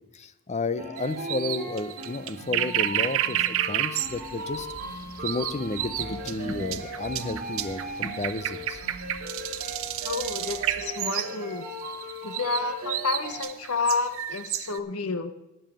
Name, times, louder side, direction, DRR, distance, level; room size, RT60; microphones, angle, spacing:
voice 1, 0.1-4.7 5.2-8.8, left 3 dB, 30° left, 13 dB, 0.6 m, -32 dB
sound 1, 0.8-13.4, equal, 45° right, 3.2 m, -38 dB
sound 2, 1.0-11.4 11.6-14.8, right 12 dB, 65° right, 0.6 m, -31 dB
sound 3, 4.0-10.7, equal, 55° left, 2.9 m, -49 dB
voice 2, 10.0-11.7 12.2-15.3, left 4 dB, 75° left, 10 dB, 0.9 m, -30 dB
11.0 x 5.6 x 8.5 m, 0.91 s
head